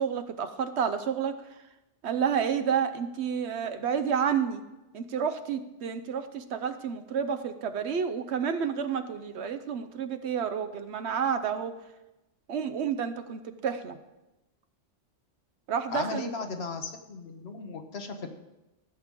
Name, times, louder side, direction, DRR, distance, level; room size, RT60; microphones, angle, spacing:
voice 1, 0.0-1.4 2.0-4.6 4.9-11.7 12.5-14.0 15.7-16.3, right 7 dB, 70° right, 9 dB, 0.9 m, -30 dB
voice 2, 15.9-18.3, left 4 dB, 60° left, 6 dB, 1.2 m, -36 dB
14.5 x 7.5 x 3.7 m, 0.99 s
omnidirectional pair, 1.2 m